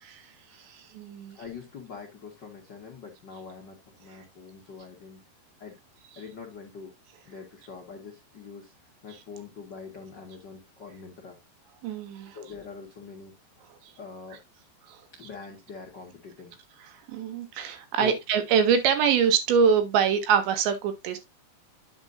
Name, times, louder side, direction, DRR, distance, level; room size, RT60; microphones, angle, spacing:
voice 1, 0.0-1.4 11.8-12.4 13.8-13.9 14.9-15.0 16.8-21.2, right 7 dB, 90° right, 3.7 m, -25 dB
voice 2, 1.3-5.2 5.6-5.7 6.1-6.9 7.2-8.7 9.0-11.4 12.3-13.3 14.0-14.4 15.1-16.6 18.0-18.2, left 5 dB, 70° left, 1.0 m, -43 dB
9.8 x 7.3 x 2.6 m
omnidirectional pair, 4.9 m